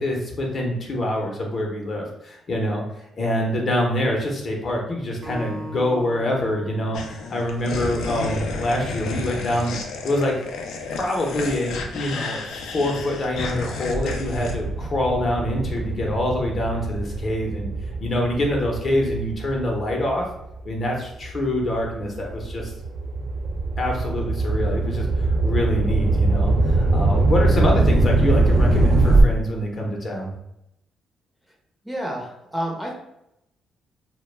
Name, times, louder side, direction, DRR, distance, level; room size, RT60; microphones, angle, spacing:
voice 1, 0.0-2.8 3.2-9.8 10.0-10.3 10.9-17.7 18.0-20.2 20.6-22.7 23.2-23.3 23.8-30.3, left 1 dB, 45° left, 0 dB, 0.7 m, -25 dB
Acoustic guitar, 5.2-8.5, equal, 45° right, 0.8 m, -40 dB
sound 1, 6.9-14.5, left 4 dB, 80° left, 0.3 m, -32 dB
sound 2, 13.9-20.7 21.2-29.2, right 2 dB, 65° right, 0.5 m, -22 dB
voice 2, 31.8-32.9, equal, 5° right, -1 dB, 0.6 m, -29 dB
2.2 x 2.1 x 3.2 m, 0.81 s
cardioid pair, 90°, 0 cm